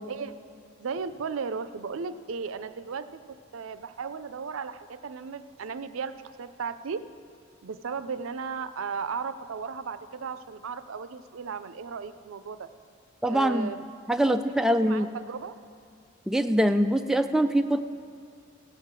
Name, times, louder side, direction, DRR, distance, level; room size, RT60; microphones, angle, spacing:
voice 1, 0.8-3.2 3.5-7.0 7.6-12.7 13.3-13.9 14.2-14.4 14.7-15.6, right 5 dB, 85° right, 12 dB, 0.5 m, -35 dB
voice 2, 13.2-13.7 14.1-15.1 16.3-17.8, right 1 dB, ahead, 7 dB, 0.3 m, -23 dB
15.5 x 6.5 x 7.4 m, 2.3 s
head